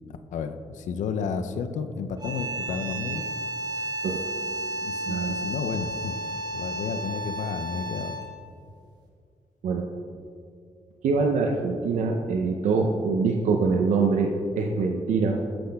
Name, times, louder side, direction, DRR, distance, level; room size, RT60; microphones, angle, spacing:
voice 1, 0.3-3.3 4.7-6.2 6.5-8.1, left 6 dB, 90° left, 8 dB, 0.4 m, -32 dB
sound 1, 2.2-8.4, right 1 dB, 35° right, 1.1 m, -32 dB
voice 2, 5.1-5.4 9.6-9.9 11.0-15.4, right 4 dB, 90° right, 2 dB, 0.5 m, -24 dB
8.5 x 7.7 x 2.2 m, 2.3 s
cardioid pair, 85°, 12 cm